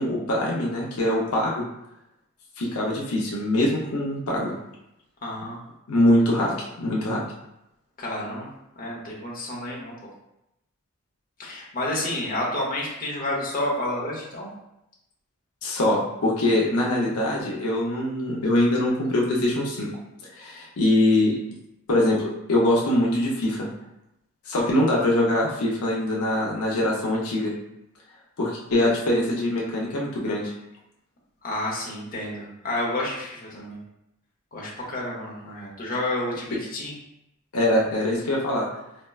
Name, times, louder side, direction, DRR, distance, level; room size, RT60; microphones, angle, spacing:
voice 1, 0.0-1.6 2.6-4.5 5.9-7.2 15.6-19.9 20.3-21.3 21.9-23.7 24.5-27.5 28.4-30.5 37.5-38.7, left 1 dB, 80° left, -3 dB, 0.6 m, -23 dB
voice 2, 5.2-5.6 8.0-8.5 8.8-9.9 11.4-14.5 24.9-25.1 31.4-33.8 34.5-36.9, left 1 dB, 40° left, -4 dB, 0.8 m, -30 dB
4.3 x 2.1 x 2.3 m, 0.85 s
head